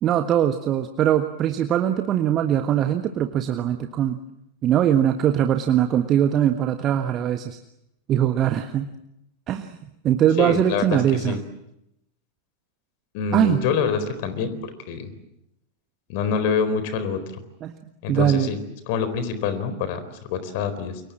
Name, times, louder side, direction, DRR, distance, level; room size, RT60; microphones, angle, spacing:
voice 1, 0.0-4.2 4.6-7.6 8.1-8.9 9.5-9.8 10.0-11.4 13.3-13.6 17.6-17.7 18.1-18.5, right 10 dB, 30° right, 7 dB, 1.4 m, -21 dB
voice 2, 10.4-11.4 13.1-15.1 16.1-17.2 18.0-18.6 18.9-21.0, left 6 dB, 50° left, 12 dB, 4.2 m, -26 dB
29.0 x 24.0 x 7.5 m, 0.85 s
figure-of-eight pair, 90°, 0 cm